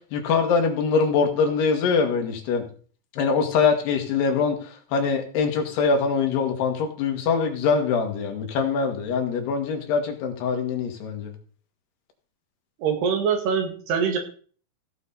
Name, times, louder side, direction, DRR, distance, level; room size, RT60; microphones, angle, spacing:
voice 1, 0.1-2.7 3.1-4.6 4.9-11.3, left 5 dB, 90° left, 4 dB, 3.9 m, -23 dB
voice 2, 12.8-14.2, right 6 dB, 85° right, 5 dB, 4.1 m, -23 dB
16.5 x 7.2 x 4.2 m, 0.42 s
omnidirectional pair, 4.5 m